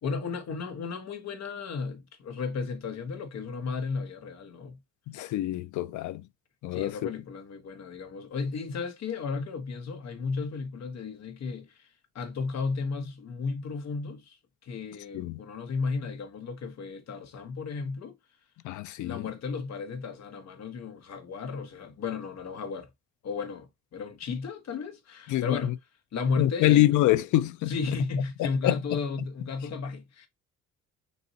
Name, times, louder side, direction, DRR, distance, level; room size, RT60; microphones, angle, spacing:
voice 1, 0.0-4.8 6.7-18.2 19.0-22.9 23.2-25.7 26.1-26.9 27.7-30.3, left 4 dB, 60° left, 1.2 m, -34 dB
voice 2, 5.1-6.2 6.6-6.9 15.1-15.4 18.6-19.3 25.3-25.6 26.4-27.7 28.6-28.8, left 15 dB, 75° left, 0.5 m, -25 dB
4.0 x 2.7 x 3.9 m
cardioid pair, 90°, 30 cm